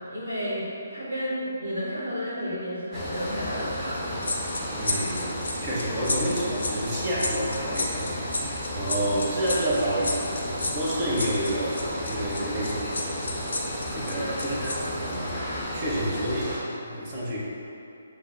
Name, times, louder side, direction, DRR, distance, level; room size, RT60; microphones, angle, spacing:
voice 1, 0.0-4.3 8.9-9.1, equal, 80° right, -7 dB, 1.2 m, -32 dB
sound 1, 2.9-16.6, equal, ahead, 0.9 m, -33 dB
sound 2, 4.2-14.8 15.1-15.3, left 2 dB, 65° left, 0.5 m, -32 dB
voice 2, 4.8-17.4, right 1 dB, 25° right, -6 dB, 0.9 m, -30 dB
6.6 x 2.2 x 2.5 m, 2.7 s
figure-of-eight pair, 140°, 0 cm